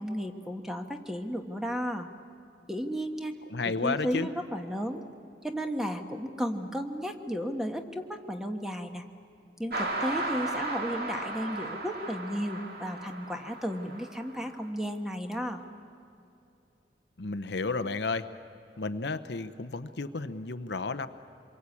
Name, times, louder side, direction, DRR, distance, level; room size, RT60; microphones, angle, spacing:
voice 1, 0.0-2.1 2.7-3.4 3.8-5.0 5.4-9.0 9.6-15.6, equal, 5° right, 5 dB, 1.3 m, -34 dB
voice 2, 3.5-4.3 17.2-18.3 18.8-21.1, left 3 dB, 65° left, 10 dB, 0.8 m, -32 dB
sound 1, 9.7-14.5, right 2 dB, 55° right, 2.7 m, -35 dB
26.5 x 23.0 x 8.5 m, 2.7 s
head